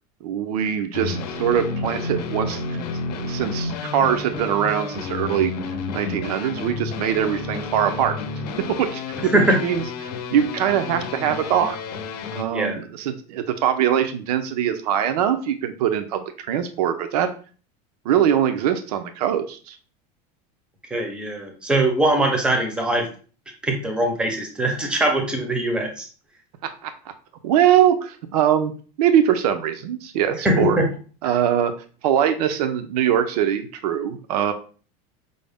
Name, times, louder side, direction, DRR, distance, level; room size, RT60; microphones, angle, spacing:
voice 1, 0.2-2.8 3.2-5.5 5.9-8.1 8.8-11.8 12.3-17.3 18.0-19.8 26.8-26.9 27.4-28.7 29.0-30.8 31.2-31.7 32.0-34.5, right 9 dB, 90° right, 8 dB, 0.5 m, -22 dB
sound 1, 0.9-12.4, left 4 dB, 80° left, 0.6 m, -30 dB
voice 2, 12.5-12.8 20.9-23.1 23.6-26.1 30.4-30.8, right 1 dB, 5° right, 3 dB, 0.5 m, -21 dB
5.2 x 2.0 x 3.4 m, 0.39 s
supercardioid pair, 175°, 20 cm